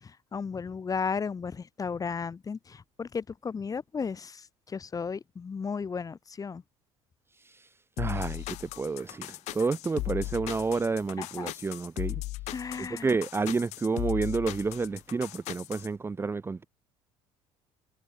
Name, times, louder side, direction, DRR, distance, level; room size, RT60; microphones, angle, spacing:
voice 1, 0.0-6.6 11.2-11.5 12.5-13.1, left 5 dB, 30° left, 1.6 m, -34 dB
sound 1, 8.0-15.9, left 19 dB, 65° left, 0.6 m, -37 dB
voice 2, 8.0-12.2 12.8-16.6, right 4 dB, 20° right, 0.7 m, -30 dB
supercardioid pair, 85°, 12 cm